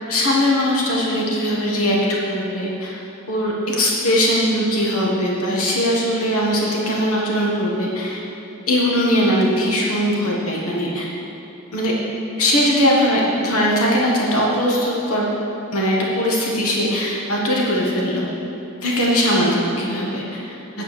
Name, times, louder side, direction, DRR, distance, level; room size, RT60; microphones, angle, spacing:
voice 1, 0.1-2.0 2.3-2.9 3.3-8.2 8.7-11.1 11.7-11.9 12.4-15.3 15.7-18.3 18.8-20.4, equal, 80° left, -3 dB, 1.5 m, -20 dB
9.9 x 5.2 x 6.8 m, 3.0 s
head